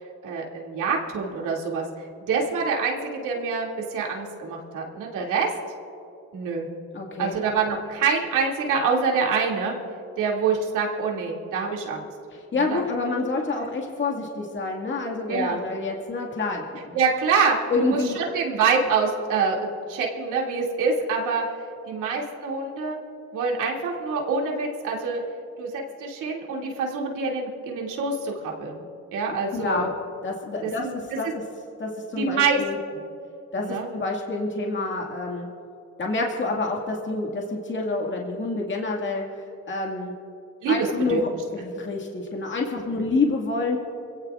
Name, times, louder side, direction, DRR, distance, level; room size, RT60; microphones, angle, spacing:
voice 1, 0.2-1.8 2.3-5.5 6.3-6.7 7.2-9.7 10.2-12.1 12.6-12.8 13.5-13.7 15.3-15.6 16.9-19.6 19.9-21.4 21.9-23.0 23.3-25.2 25.6-28.8 29.1-29.9 30.6-30.9 32.2-32.6 32.9-33.0 33.6-33.9 40.6-41.2 42.9-43.1, right 5 dB, 85° right, -1 dB, 2.7 m, -26 dB
voice 2, 6.9-7.4 12.3-16.9 17.7-18.2 29.3-29.9 30.2-31.3 31.8-32.8 33.5-35.5 36.0-40.1 40.7-43.8, left 3 dB, 40° left, -1 dB, 2.1 m, -28 dB
26.0 x 17.0 x 2.5 m, 2.7 s
cardioid pair, 90°, 30 cm